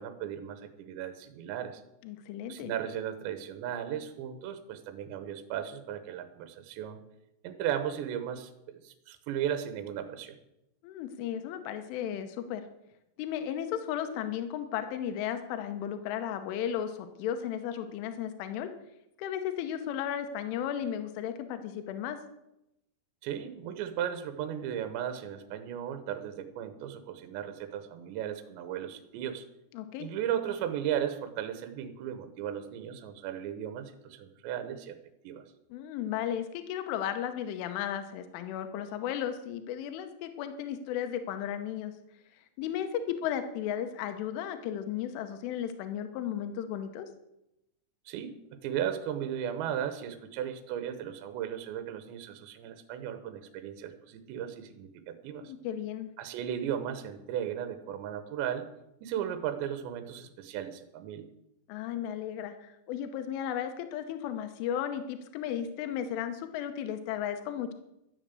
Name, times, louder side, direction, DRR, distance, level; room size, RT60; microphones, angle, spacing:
voice 1, 0.0-1.8 2.5-7.0 7.4-10.4 23.2-29.4 30.0-35.0 35.2-35.4 48.1-55.5 56.2-58.7 59.0-61.3, right 10 dB, 75° right, 9 dB, 3.0 m, -36 dB
voice 2, 2.0-2.7 10.8-12.6 13.2-18.7 19.2-22.2 29.7-30.1 35.7-41.9 42.6-47.1 55.4-56.1 61.7-67.7, left 9 dB, 80° left, 8 dB, 3.4 m, -35 dB
13.5 x 7.3 x 8.2 m, 0.86 s
omnidirectional pair, 5.7 m